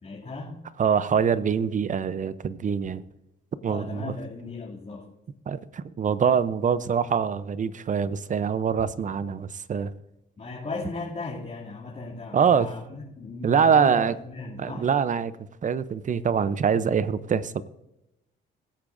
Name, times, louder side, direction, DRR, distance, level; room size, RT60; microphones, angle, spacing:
voice 1, 0.0-0.7 3.6-5.1 10.4-14.9, left 3 dB, 35° left, -6 dB, 2.6 m, -37 dB
voice 2, 0.8-3.0 3.6-4.1 5.5-9.9 12.3-12.7 13.4-14.1 14.6-15.3 15.6-17.6, right 7 dB, 40° right, 15 dB, 0.7 m, -24 dB
20.0 x 8.4 x 2.6 m, 0.89 s
cardioid pair, 90°, 20 cm